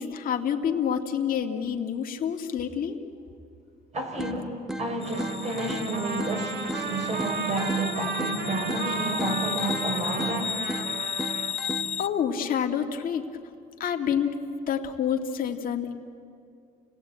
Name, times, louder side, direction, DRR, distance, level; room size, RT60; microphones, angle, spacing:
voice 1, 0.0-3.0 12.0-13.3 13.8-15.9, left 8 dB, 55° left, 3 dB, 2.2 m, -28 dB
voice 2, 3.9-10.6, right 1 dB, 40° right, 2 dB, 5.8 m, -31 dB
sound 1, 4.2-12.2, right 1 dB, ahead, 1.5 m, -37 dB
sound 2, 5.0-12.1, left 8 dB, 35° left, 0.5 m, -34 dB
Trumpet, 5.0-11.5, right 6 dB, 70° right, 2.3 m, -35 dB
28.5 x 19.0 x 8.9 m, 2.4 s
cardioid pair, 110°, 17 cm